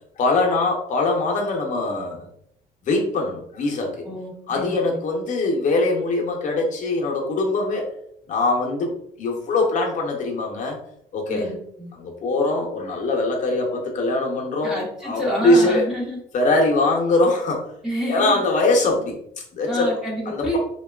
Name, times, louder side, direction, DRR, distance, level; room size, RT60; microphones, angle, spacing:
voice 1, 0.2-2.3 2.8-4.0 4.5-7.9 8.3-8.9 9.2-10.8 11.1-11.5 11.9-14.8 15.0-15.8 16.3-17.7 18.1-20.0 20.3-20.6, left 2 dB, 50° left, 0 dB, 0.7 m, -22 dB
voice 2, 4.0-5.0 11.3-11.9 14.6-16.2 17.8-18.4 19.7-20.6, equal, 5° right, -5 dB, 0.7 m, -28 dB
2.9 x 2.3 x 2.3 m, 0.70 s
cardioid pair, 110°, 17 cm